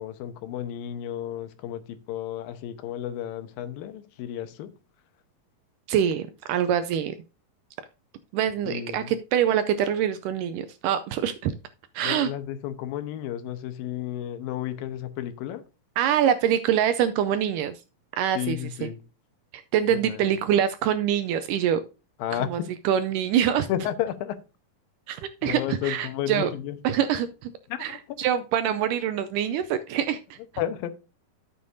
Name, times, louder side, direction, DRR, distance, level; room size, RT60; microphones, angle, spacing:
voice 1, 0.0-4.7 8.6-9.1 12.0-15.6 18.3-19.0 19.9-20.2 22.2-22.7 23.7-24.4 25.4-26.8 27.7-28.2 30.6-30.9, left 11 dB, 85° left, 10 dB, 2.5 m, -32 dB
voice 2, 5.9-7.1 8.3-11.5 12.0-12.3 16.0-17.8 18.2-18.9 19.5-21.8 22.3-22.6 22.9-23.7 25.1-26.5 26.8-27.5 27.8-30.4, right 9 dB, 80° right, 10 dB, 1.9 m, -25 dB
12.5 x 7.1 x 2.7 m, 0.31 s
omnidirectional pair, 4.1 m